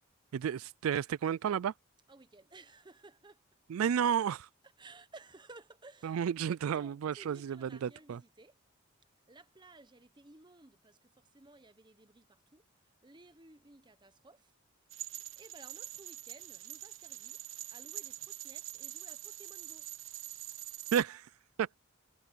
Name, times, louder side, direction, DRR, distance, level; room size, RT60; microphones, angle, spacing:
voice 1, 0.3-1.7 3.7-4.5 6.0-8.2 20.9-21.3 21.6-21.7, right 8 dB, 85° right, 0.3 m, -32 dB
voice 2, 2.1-3.4 4.8-6.2 6.7-8.6 9.3-14.5 14.9-17.4 17.7-19.9, right 2 dB, 20° right, 1.0 m, -57 dB
sound 1, 14.9-21.0, right 13 dB, 65° right, 1.3 m, -45 dB
head